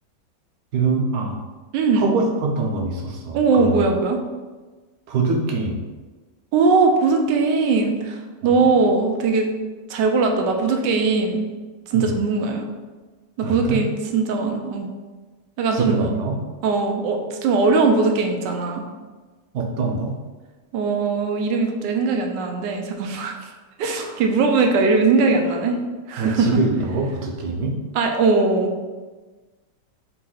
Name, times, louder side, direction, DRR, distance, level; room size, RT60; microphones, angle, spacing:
voice 1, 0.7-1.4 2.0-3.8 5.1-5.9 8.4-8.7 11.9-12.1 13.4-13.8 15.7-16.4 19.5-20.1 23.9-24.2 26.2-27.8, right 3 dB, 65° right, 1 dB, 1.1 m, -24 dB
voice 2, 1.7-2.1 3.3-4.2 6.5-9.5 9.9-11.4 11.9-12.7 13.4-14.9 15.6-16.0 16.6-18.8 20.7-23.3 23.8-25.8 26.1-26.5 27.9-28.7, right 4 dB, 85° right, 3 dB, 1.2 m, -20 dB
4.2 x 2.6 x 3.8 m, 1.3 s
omnidirectional pair, 1.8 m